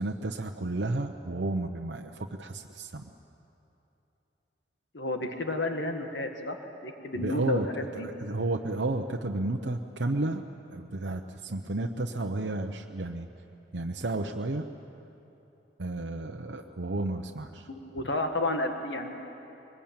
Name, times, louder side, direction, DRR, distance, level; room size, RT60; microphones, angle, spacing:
voice 1, 0.0-3.0 7.2-7.7 8.0-13.3 13.7-14.6 15.8-17.7, right 2 dB, 85° right, 3 dB, 0.9 m, -32 dB
voice 2, 4.9-6.6 6.8-8.1 17.7-19.1, left 2 dB, 90° left, 5 dB, 1.8 m, -31 dB
23.0 x 20.5 x 8.9 m, 3.0 s
head